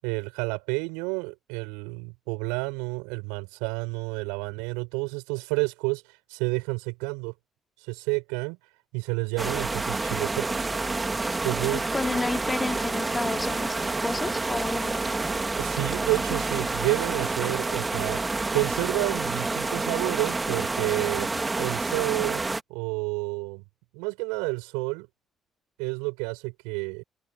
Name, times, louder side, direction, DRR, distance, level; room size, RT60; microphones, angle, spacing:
voice 1, 0.0-6.0 6.3-7.3 7.8-8.6 8.9-10.7 11.4-11.9 15.6-21.3 21.6-22.4 22.7-23.6 23.9-25.1 25.8-27.0, right 32 dB, 70° right, 4.8 m, -30 dB
sound 1, 9.4-22.6, right 3 dB, 25° right, 3.2 m, -28 dB
voice 2, 11.9-15.2, left 3 dB, 25° left, 4.4 m, -31 dB
figure-of-eight pair, 45°, 0 cm